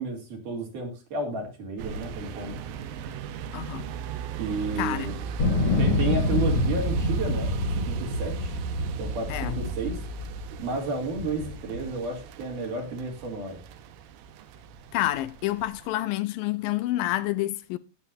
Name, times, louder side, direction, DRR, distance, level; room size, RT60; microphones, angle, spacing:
voice 1, 0.0-2.6 4.4-5.1 5.8-8.6 9.0-10.0 10.6-13.6, right 3 dB, 60° right, 4.5 m, -32 dB
sound 1, 1.8-15.9, right 7 dB, 75° right, 2.7 m, -36 dB
voice 2, 3.5-3.9 4.8-5.1 9.3-9.6 14.9-17.8, left 15 dB, 80° left, 2.3 m, -28 dB
sound 2, 5.4-10.6 11.2-11.9, left 2 dB, 45° left, 2.3 m, -27 dB
19.0 x 8.3 x 2.7 m
omnidirectional pair, 4.3 m